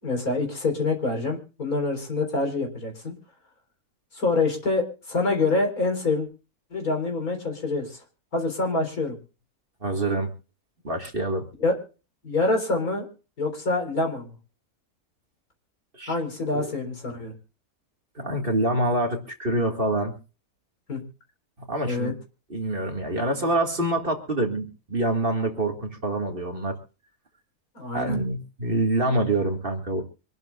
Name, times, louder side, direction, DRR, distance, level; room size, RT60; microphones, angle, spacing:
voice 1, 0.0-3.1 4.1-6.3 6.7-8.0 8.3-9.2 11.6-11.7 12.2-13.1 13.4-14.3 16.1-17.3 20.9-21.0 21.8-22.1 27.7-28.2, left 3 dB, 70° left, 3 dB, 4.5 m, -26 dB
voice 2, 9.8-10.3 10.8-11.5 15.9-16.1 16.5-16.7 18.2-20.1 21.7-22.1 22.5-26.8 27.9-30.0, right 2 dB, 35° right, 2 dB, 2.2 m, -26 dB
25.5 x 12.0 x 2.4 m, 0.35 s
omnidirectional pair, 1.6 m